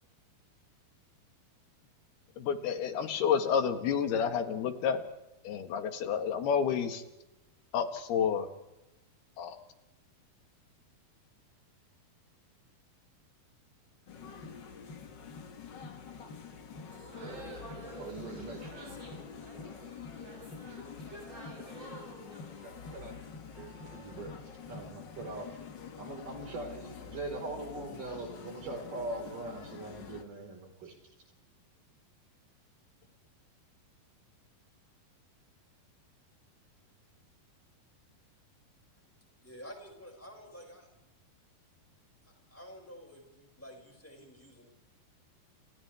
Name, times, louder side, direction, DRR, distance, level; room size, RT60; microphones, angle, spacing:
voice 1, 2.4-5.0 5.4-7.0 7.7-8.5 9.4-9.6, left 7 dB, 90° left, 6 dB, 3.7 m, -30 dB
sound 1, 14.1-30.2, left 6 dB, 70° left, 1.0 m, -47 dB
sound 2, 16.9-23.9, right 2 dB, 30° right, 6.7 m, -49 dB
voice 2, 17.9-19.0 22.6-23.2 23.6-24.4 24.7-25.6 26.0-31.0, right 2 dB, 60° right, 2 dB, 6.1 m, -42 dB
voice 3, 39.4-40.9 42.5-44.7, equal, 5° left, 0 dB, 6.3 m, -50 dB
30.0 x 30.0 x 3.6 m, 0.96 s
omnidirectional pair, 4.4 m